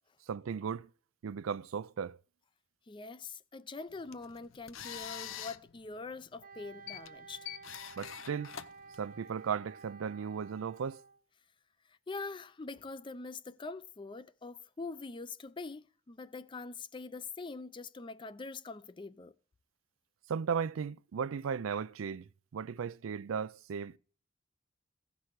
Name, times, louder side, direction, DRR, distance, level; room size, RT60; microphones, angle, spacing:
voice 1, 0.3-0.9 1.2-2.2 8.0-8.5 9.0-11.0 20.3-24.0, right 6 dB, 85° right, 0.4 m, -36 dB
voice 2, 2.9-7.5 11.9-19.3, left 3 dB, 25° left, 0.4 m, -44 dB
sound 1, 3.9-9.5, left 10 dB, 80° left, 0.6 m, -46 dB
Wind instrument woodwind instrument, 6.4-11.2, right 4 dB, 45° right, 0.7 m, -53 dB
16.0 x 6.1 x 4.7 m
head